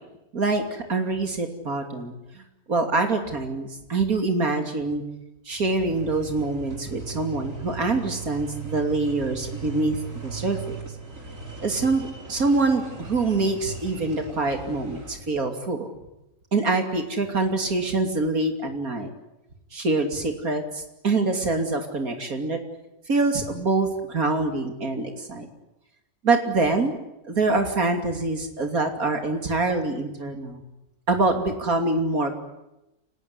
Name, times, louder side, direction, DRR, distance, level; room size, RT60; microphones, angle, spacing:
voice 1, 0.3-2.4 2.7-5.0 5.4-10.8 11.6-15.9 16.5-19.1 19.7-22.6 23.1-25.5 26.2-26.9 27.3-30.6 31.1-32.4, right 3 dB, 85° right, 5 dB, 3.3 m, -25 dB
sound 1, 5.7-15.2, right 4 dB, 65° right, 5.1 m, -38 dB
29.5 x 20.0 x 9.8 m, 0.92 s
omnidirectional pair, 1.5 m